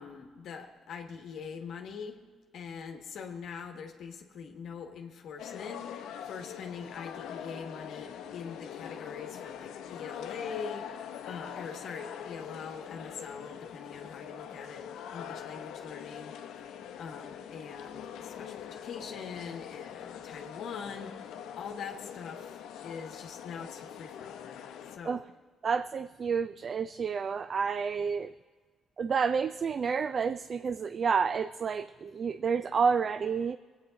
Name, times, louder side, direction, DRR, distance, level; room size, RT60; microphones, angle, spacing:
voice 1, 0.0-2.2 2.5-11.0 11.2-16.4 17.0-24.5 24.9-25.2, left 6 dB, 70° left, 3 dB, 1.1 m, -43 dB
sound 1, 5.4-25.0, left 9 dB, 85° left, 0.7 m, -43 dB
voice 2, 25.6-28.3 29.0-33.6, right 6 dB, 45° right, 13 dB, 0.3 m, -29 dB
20.0 x 8.7 x 3.9 m, 1.5 s
cardioid pair, 90°, 0 cm